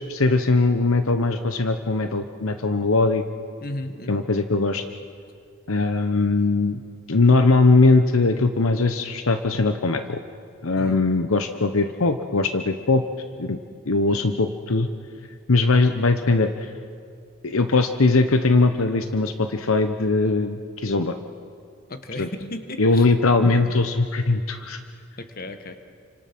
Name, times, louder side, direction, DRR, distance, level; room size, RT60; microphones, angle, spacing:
voice 1, 0.1-3.2 4.1-4.8 5.7-6.8 7.1-10.2 10.6-13.0 13.4-13.6 13.9-14.9 15.5-16.7 17.4-21.2 22.2-22.3 22.8-24.8, left 3 dB, 70° left, 8 dB, 1.0 m, -20 dB
voice 2, 3.6-4.2 10.8-11.0 21.9-23.1 25.2-25.8, left 1 dB, 40° left, 7 dB, 1.6 m, -35 dB
30.0 x 25.5 x 6.1 m, 2.3 s
head